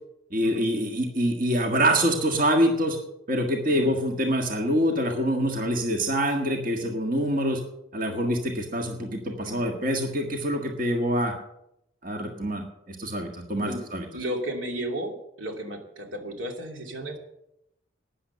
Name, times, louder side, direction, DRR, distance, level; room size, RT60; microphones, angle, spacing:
voice 1, 0.3-3.0 3.3-7.6 7.9-11.3 12.0-14.0, equal, 45° right, 2 dB, 1.7 m, -25 dB
voice 2, 14.1-17.2, right 1 dB, 85° right, 2 dB, 2.6 m, -34 dB
13.0 x 9.9 x 6.8 m, 0.80 s
head